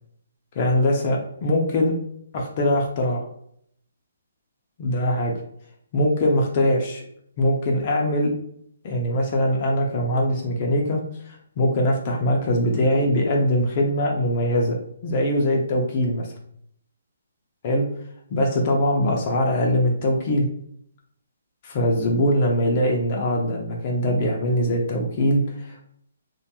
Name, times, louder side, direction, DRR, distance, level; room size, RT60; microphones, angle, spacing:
voice 1, 0.6-1.9 2.3-3.2 4.8-5.3 5.9-7.0 7.4-8.3 8.8-14.8 15.0-16.3 17.6-17.8 18.3-20.5 21.6-25.8, left 1 dB, 35° left, 0 dB, 0.4 m, -22 dB
2.4 x 2.2 x 2.8 m, 0.68 s
hypercardioid pair, 160°, 0 cm